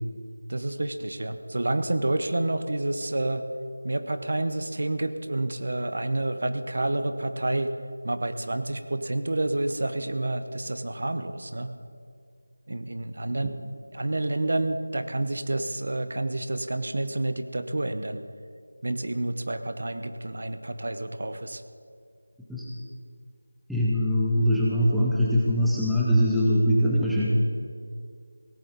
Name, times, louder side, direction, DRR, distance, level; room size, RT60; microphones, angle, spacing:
voice 1, 0.5-3.4 3.8-7.7 8.0-11.7 12.7-13.5 13.9-18.2 18.8-21.6, right 2 dB, 50° right, 10 dB, 0.9 m, -29 dB
voice 2, 23.7-27.3, equal, ahead, -8 dB, 0.6 m, -22 dB
17.0 x 15.0 x 4.0 m, 2.2 s
figure-of-eight pair, 175°, 0 cm